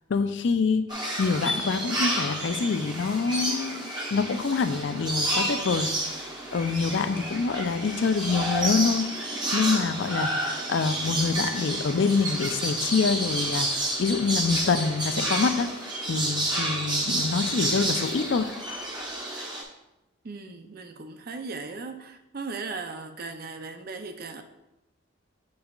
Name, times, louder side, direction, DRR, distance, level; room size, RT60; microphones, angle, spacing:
voice 1, 0.1-0.9 1.2-6.2 6.5-9.1 9.5-13.7 14.0-15.7 16.0-18.5, left 4 dB, 60° left, 9 dB, 0.4 m, -26 dB
sound 1, 0.9-19.6, right 1 dB, 20° right, 0.9 m, -30 dB
voice 2, 20.2-24.4, right 4 dB, 45° right, 7 dB, 0.5 m, -37 dB
7.7 x 5.4 x 2.4 m, 0.94 s
head